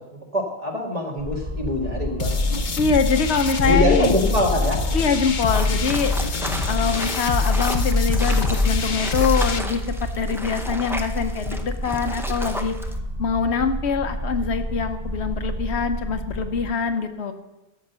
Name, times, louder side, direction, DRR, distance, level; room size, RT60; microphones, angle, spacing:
voice 1, 0.1-2.4 3.6-4.8, left 1 dB, 35° right, -1 dB, 2.0 m, -23 dB
sound 1, 1.2-16.7, equal, 60° right, 2.7 m, -31 dB
sound 2, 2.2-9.6, left 3 dB, 50° left, 0.9 m, -24 dB
voice 2, 2.8-4.1 4.9-6.2 6.7-12.7 13.2-17.3, left 5 dB, 85° left, 7 dB, 1.1 m, -24 dB
sound 3, 5.5-13.0, equal, 5° right, 0.5 m, -33 dB
13.0 x 5.9 x 6.8 m, 1.0 s
omnidirectional pair, 1.1 m